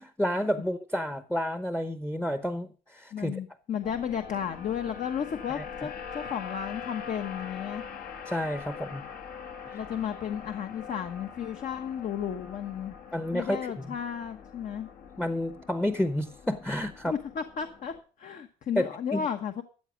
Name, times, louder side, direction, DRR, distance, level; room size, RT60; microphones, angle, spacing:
voice 1, 0.0-3.4 5.6-5.7 8.3-9.0 9.7-9.8 13.1-13.6 15.2-17.1 18.8-19.2, equal, 5° left, 11 dB, 0.9 m, -30 dB
voice 2, 3.1-7.8 9.7-12.9 13.3-14.9 17.1-19.6, left 8 dB, 50° left, 7 dB, 1.2 m, -33 dB
sound 1, 3.8-18.0, left 6 dB, 70° left, 2.0 m, -43 dB
13.5 x 7.8 x 5.0 m, 0.37 s
cardioid pair, 110°, 17 cm